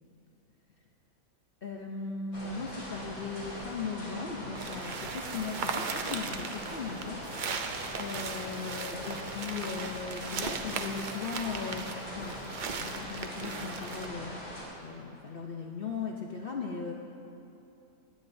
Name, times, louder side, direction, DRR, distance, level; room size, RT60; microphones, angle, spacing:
voice 1, 1.6-12.4 12.8-14.5 14.8-16.9, left 5 dB, 55° left, 0 dB, 0.7 m, -38 dB
sound 1, 2.3-14.6, left 1 dB, 80° left, 3.0 m, -42 dB
sound 2, 4.6-14.1, right 5 dB, 70° right, 0.4 m, -38 dB
17.0 x 10.0 x 2.6 m, 2.8 s
omnidirectional pair, 1.5 m